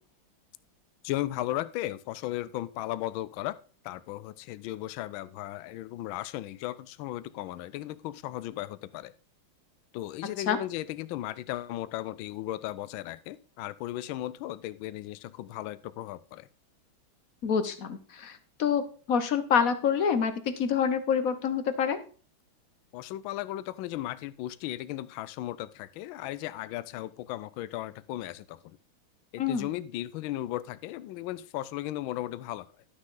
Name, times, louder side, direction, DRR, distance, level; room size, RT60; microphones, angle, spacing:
voice 1, 1.0-3.6 3.8-9.1 9.9-16.5 22.9-28.6 29.3-32.7, left 15 dB, 75° left, 16 dB, 1.3 m, -36 dB
voice 2, 17.4-22.0 29.4-29.7, left 7 dB, 55° left, 11 dB, 1.1 m, -27 dB
12.0 x 6.3 x 3.8 m, 0.40 s
omnidirectional pair, 2.3 m